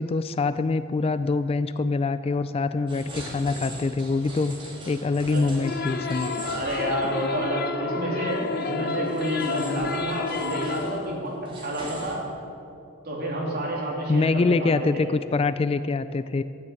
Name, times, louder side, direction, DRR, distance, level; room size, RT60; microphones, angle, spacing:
voice 1, 0.0-4.6 4.9-6.3 14.1-16.4, left 3 dB, 30° left, 13 dB, 0.3 m, -24 dB
sound 1, 2.9-7.4 7.7-7.8 8.5-12.1, right 1 dB, 25° right, 2.7 m, -41 dB
sound 2, 5.6-11.1, left 4 dB, 50° left, 0.8 m, -30 dB
voice 2, 6.4-12.2 13.0-15.0, equal, 50° right, -3 dB, 3.3 m, -29 dB
12.5 x 9.7 x 8.4 m, 2.6 s
head